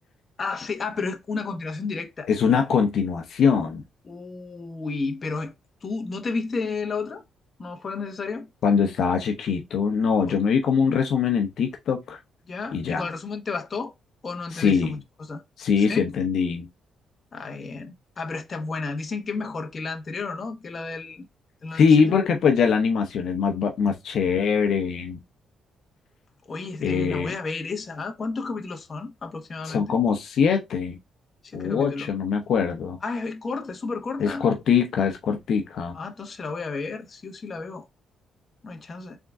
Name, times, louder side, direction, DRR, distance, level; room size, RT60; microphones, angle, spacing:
voice 1, 0.4-2.3 4.0-5.5 5.8-7.2 7.6-8.5 10.3-10.4 12.5-13.9 14.2-15.4 15.8-16.0 17.3-21.3 21.6-21.8 26.5-30.0 31.4-32.1 33.0-34.4 35.9-37.9 38.6-39.2, left 4 dB, 35° left, 1.1 m, -32 dB
voice 2, 2.3-3.8 8.6-12.2 12.7-13.1 14.5-15.0 15.6-16.7 21.7-25.2 26.8-27.3 29.6-31.0 31.5-33.0 34.2-35.9, left 6 dB, 65° left, 0.9 m, -22 dB
3.8 x 3.6 x 3.6 m
cardioid pair, 90°, 0 cm